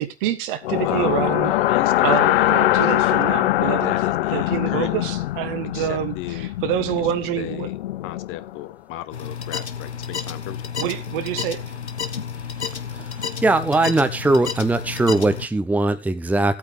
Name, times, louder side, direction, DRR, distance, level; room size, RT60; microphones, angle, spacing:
voice 1, 0.0-1.5 2.0-3.9 4.3-7.7 10.8-11.6, right 11 dB, 55° right, 1.5 m, -26 dB
sound 1, 0.6-8.7, left 14 dB, 60° left, 0.7 m, -22 dB
voice 2, 0.7-3.2 3.8-5.1 5.7-6.5 7.0-7.1 7.4-7.8 8.0-10.6, left 15 dB, 40° left, 0.9 m, -34 dB
sound 2, 9.1-15.5, left 7 dB, 85° left, 1.0 m, -31 dB
sound 3, 10.8-11.9 12.2-14.5 14.9-15.8, right 11 dB, 70° right, 1.7 m, -46 dB
voice 3, 13.2-16.6, right 2 dB, 5° right, 0.9 m, -20 dB
16.5 x 8.4 x 3.3 m
figure-of-eight pair, 90°, 32 cm